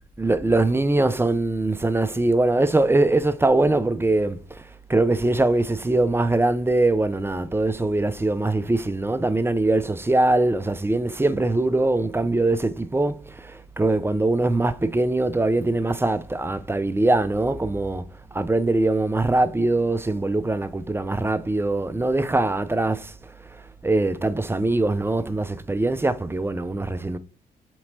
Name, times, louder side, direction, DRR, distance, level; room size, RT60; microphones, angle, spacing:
voice 1, 0.2-27.2, right 2 dB, 10° right, 0.4 m, -22 dB
5.3 x 2.9 x 2.7 m
hypercardioid pair, 40°, 21 cm